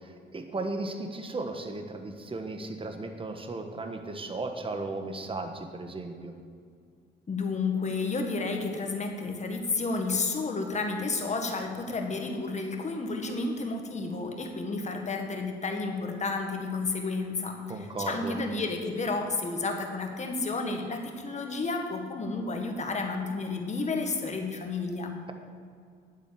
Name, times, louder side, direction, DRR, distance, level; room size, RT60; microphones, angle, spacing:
voice 1, 0.0-6.3 17.7-18.4, right 2 dB, 25° right, 5 dB, 1.4 m, -35 dB
voice 2, 7.3-25.1, left 3 dB, 35° left, 3 dB, 1.8 m, -31 dB
9.4 x 7.6 x 8.4 m, 2.2 s
cardioid pair, 90°, 20 cm